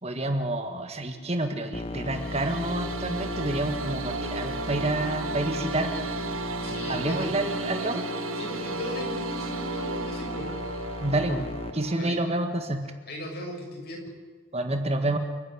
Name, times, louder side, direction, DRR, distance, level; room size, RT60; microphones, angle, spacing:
voice 1, 0.0-5.9 6.9-8.1 11.0-11.4 11.7-12.8 14.5-15.2, right 1 dB, 30° right, 6 dB, 1.7 m, -28 dB
sound 1, 1.7-11.7, left 2 dB, 30° left, 1.0 m, -36 dB
sound 2, 1.9-12.1, right 3 dB, 85° right, 1.4 m, -35 dB
voice 2, 6.6-7.3 8.4-10.6 11.9-12.2 13.1-14.1, left 1 dB, 50° left, 0 dB, 6.8 m, -38 dB
29.5 x 11.0 x 9.9 m, 1.5 s
head